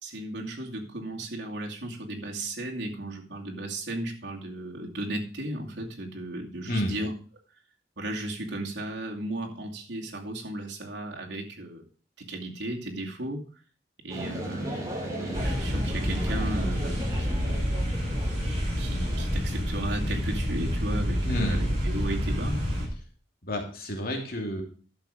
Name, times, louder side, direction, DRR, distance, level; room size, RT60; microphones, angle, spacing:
voice 1, 0.0-7.1 8.0-11.8 12.2-13.5 14.0-14.8 15.2-17.7 18.8-22.7, right 1 dB, 85° right, 0 dB, 2.5 m, -35 dB
sound 1, 14.1-19.4, right 1 dB, 20° right, 3.4 m, -37 dB
sound 2, 15.3-22.8, equal, 35° right, 5.4 m, -28 dB
voice 2, 21.2-21.6 23.4-24.6, equal, 55° left, 2 dB, 2.7 m, -30 dB
11.5 x 6.9 x 5.1 m, 0.40 s
head